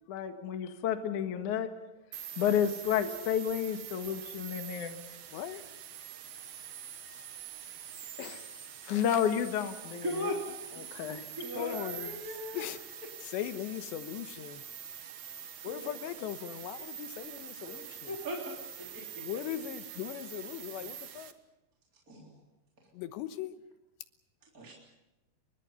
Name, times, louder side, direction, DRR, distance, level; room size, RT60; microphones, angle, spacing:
voice 1, 0.1-1.7 2.4-5.0 8.9-10.1 10.8-11.2, left 9 dB, 55° left, 6 dB, 2.6 m, -31 dB
sound 1, 2.1-21.3, right 9 dB, 80° right, 1.4 m, -45 dB
voice 2, 8.2-8.5 8.8-9.2 11.5-12.3 12.5-12.8 13.2-14.6 15.6-18.2 19.2-21.3 22.9-23.6, left 11 dB, 80° left, 10 dB, 3.3 m, -39 dB
voice 3, 10.0-10.4 11.4-12.6 15.6-15.9 17.6-17.8 18.1-18.4 18.8-19.0 22.1-22.4 24.5-24.7, left 1 dB, 20° right, -2 dB, 3.6 m, -38 dB
29.5 x 24.0 x 5.6 m, 0.96 s
omnidirectional pair, 5.1 m